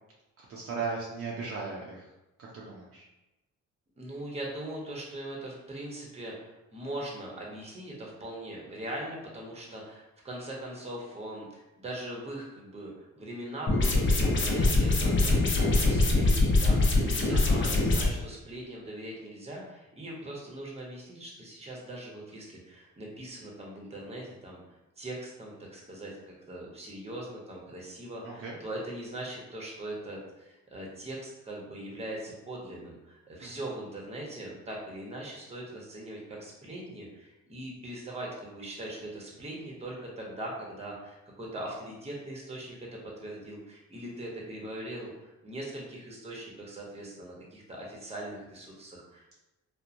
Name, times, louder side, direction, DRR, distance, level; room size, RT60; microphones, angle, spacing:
voice 1, 0.4-2.1 2.4-3.1 17.3-17.6 28.2-28.6 33.4-33.5, right 4 dB, 50° right, -3 dB, 0.6 m, -37 dB
voice 2, 4.0-15.4 15.7-24.6 25.0-49.4, right 1 dB, 20° right, -2 dB, 0.8 m, -41 dB
sound 1, 13.7-18.1, left 2 dB, 40° left, 0.6 m, -23 dB
2.9 x 2.1 x 2.5 m, 0.98 s
cardioid pair, 90°, 30 cm